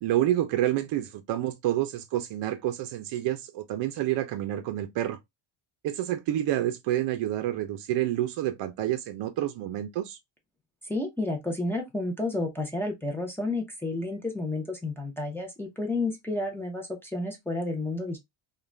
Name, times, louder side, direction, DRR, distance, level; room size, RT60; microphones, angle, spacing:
voice 1, 0.0-5.2 5.8-10.2, right 13 dB, 65° right, 0.5 m, -28 dB
voice 2, 10.8-18.2, left 2 dB, 5° left, 0.4 m, -31 dB
2.4 x 2.1 x 3.1 m
cardioid pair, 165°, 47 cm